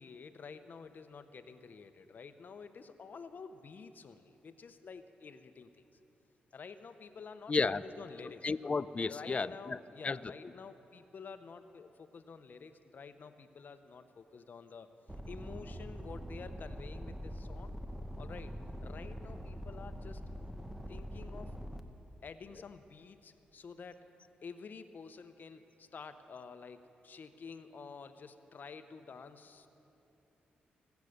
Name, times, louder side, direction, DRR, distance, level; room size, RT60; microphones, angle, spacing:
voice 1, 0.0-6.0 6.5-14.9 15.3-17.8 18.2-18.5 18.8-20.2 20.9-21.6 22.2-24.1 24.4-29.7, left 5 dB, 55° left, 10 dB, 0.8 m, -50 dB
voice 2, 7.5-7.8 8.4-9.8 10.0-10.2, left 4 dB, 35° left, 16 dB, 0.5 m, -32 dB
sound 1, 15.1-21.8, equal, 5° right, 1.0 m, -44 dB
24.5 x 8.2 x 6.7 m, 2.9 s
supercardioid pair, 55°, 4 cm